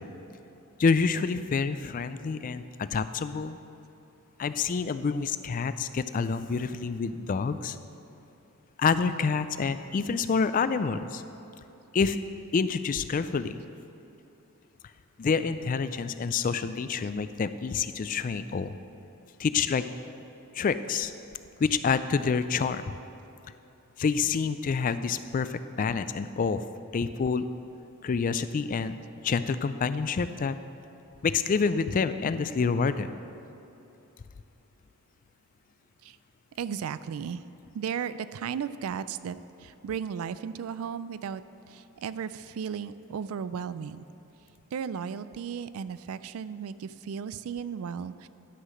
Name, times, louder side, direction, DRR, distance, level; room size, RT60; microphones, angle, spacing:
voice 1, 0.8-3.6 4.4-7.8 8.8-11.2 11.9-12.2 12.5-13.6 15.2-18.8 19.4-19.8 20.5-21.1 21.6-22.9 24.0-26.7 26.9-27.5 28.0-29.0 29.2-30.6 31.2-33.1, left 5 dB, 40° left, 12 dB, 0.3 m, -27 dB
voice 2, 36.6-37.4 37.7-44.1 44.7-48.3, right 7 dB, 75° right, 15 dB, 0.3 m, -35 dB
11.0 x 5.8 x 6.4 m, 2.9 s
head